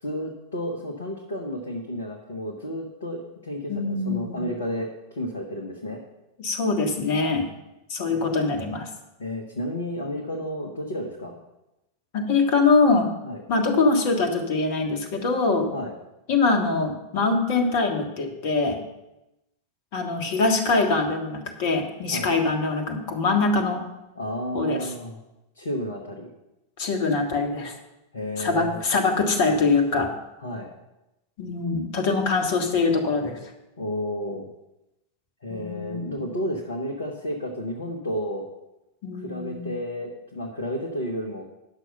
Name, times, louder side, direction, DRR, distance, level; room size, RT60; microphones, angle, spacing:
voice 1, 0.0-6.0 8.1-8.3 9.2-11.3 13.2-13.4 15.7-15.9 22.1-22.3 24.1-25.2 25.6-26.3 28.1-28.8 30.4-30.7 33.8-34.5 35.4-38.5 39.2-41.4, equal, 65° left, 1 dB, 1.2 m, -32 dB
voice 2, 3.7-4.5 6.4-7.5 7.9-8.9 12.1-13.1 13.5-15.7 16.3-18.8 19.9-23.8 24.5-24.9 26.8-27.7 28.4-30.1 31.4-33.4 35.5-36.2 39.0-39.7, left 3 dB, 45° left, 3 dB, 1.6 m, -23 dB
10.5 x 6.3 x 5.4 m, 0.93 s
figure-of-eight pair, 90°, 0 cm